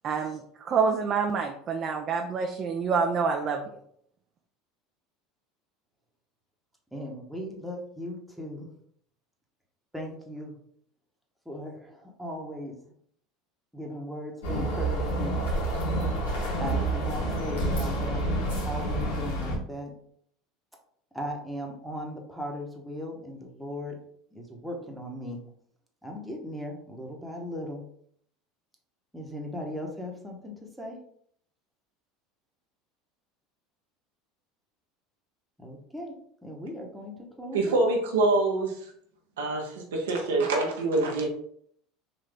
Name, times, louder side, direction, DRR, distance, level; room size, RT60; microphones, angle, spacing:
voice 1, 0.0-3.6, right 5 dB, 40° right, 3 dB, 0.5 m, -27 dB
voice 2, 6.9-8.7 9.9-10.5 11.4-12.8 13.7-15.4 16.6-18.3 18.6-19.9 21.1-24.0 24.3-25.4 26.0-27.9 29.1-31.0 35.6-36.2 36.4-37.9, equal, ahead, -1 dB, 1.1 m, -37 dB
sound 1, 14.4-19.6, right 1 dB, 85° left, 1.5 m, -28 dB
voice 3, 37.5-38.8 39.4-41.3, right 2 dB, 85° right, 1 dB, 0.9 m, -25 dB
3.9 x 2.7 x 3.4 m, 0.65 s
hypercardioid pair, 90°, 0 cm